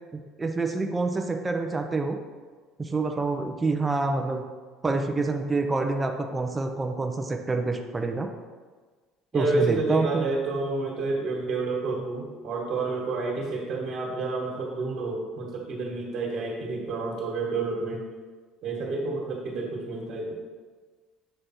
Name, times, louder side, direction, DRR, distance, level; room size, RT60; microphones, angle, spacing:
voice 1, 0.1-2.2 2.8-4.4 4.8-8.3 9.3-10.2, right 3 dB, 20° right, 4 dB, 0.7 m, -27 dB
voice 2, 9.3-18.1 18.6-20.4, right 3 dB, 60° right, -3 dB, 1.6 m, -29 dB
7.9 x 3.3 x 4.3 m, 1.4 s
hypercardioid pair, 70°, 0 cm